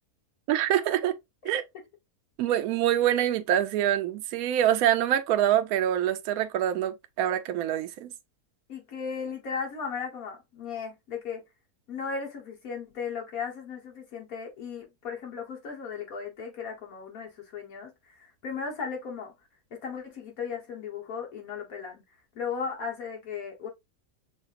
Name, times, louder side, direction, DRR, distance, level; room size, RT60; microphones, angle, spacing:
voice 1, 0.5-1.1 1.4-1.6 2.4-8.1, right 11 dB, 70° right, 1.0 m, -25 dB
voice 2, 8.7-11.4 11.9-19.3 19.7-22.0 22.4-23.7, left 6 dB, 65° left, 1.6 m, -36 dB
6.2 x 2.5 x 2.5 m
omnidirectional pair, 1.6 m